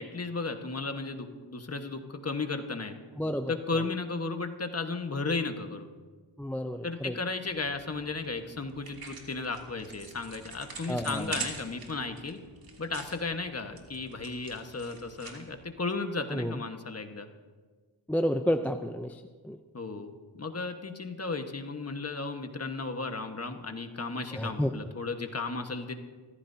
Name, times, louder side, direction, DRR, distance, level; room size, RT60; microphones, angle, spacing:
voice 1, 0.0-2.9 3.5-5.9 6.8-12.4 12.8-17.3 19.7-25.9, left 3 dB, 30° left, 6 dB, 1.4 m, -34 dB
voice 2, 3.2-3.8 6.4-7.2 10.9-11.3 16.3-16.6 18.1-19.6 24.3-24.7, equal, 5° left, 7 dB, 0.5 m, -31 dB
sound 1, 7.5-15.7, right 4 dB, 50° right, 2.8 m, -44 dB
26.0 x 14.5 x 2.8 m, 1.4 s
cardioid pair, 80°, 47 cm